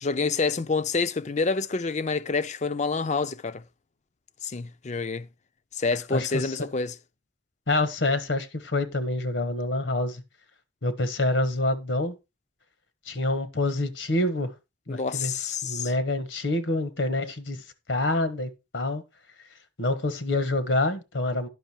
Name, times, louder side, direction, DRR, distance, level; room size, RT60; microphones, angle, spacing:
voice 1, 0.0-3.6 4.4-5.3 5.7-6.9 14.9-15.9, left 4 dB, 40° left, 0.5 m, -28 dB
voice 2, 6.1-6.6 7.7-10.2 10.8-12.1 13.1-14.5 14.9-15.3 15.6-17.6 17.9-19.0 19.8-21.5, left 2 dB, 80° left, 1.4 m, -27 dB
10.5 x 5.9 x 4.4 m
head